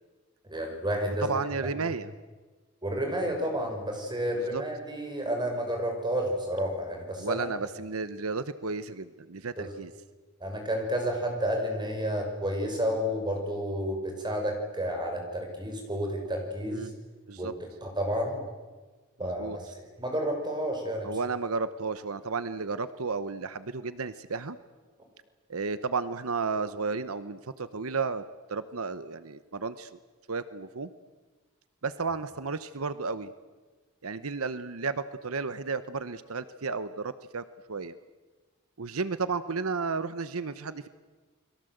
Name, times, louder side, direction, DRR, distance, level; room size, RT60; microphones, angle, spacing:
voice 1, 0.4-1.3 2.8-7.5 9.6-9.7 10.4-16.9 17.4-17.5 17.8-18.4 19.2-19.7 20.0-21.1, equal, 20° right, 3 dB, 6.3 m, -31 dB
voice 2, 1.1-2.1 4.3-4.6 7.2-9.9 16.7-16.9 17.3-17.5 19.2-19.6 21.0-24.6 25.5-28.2 28.5-30.0 30.3-30.9 31.8-33.3 34.0-38.0 38.8-40.9, right 4 dB, 85° right, 13 dB, 1.0 m, -33 dB
29.5 x 22.5 x 8.0 m, 1.3 s
head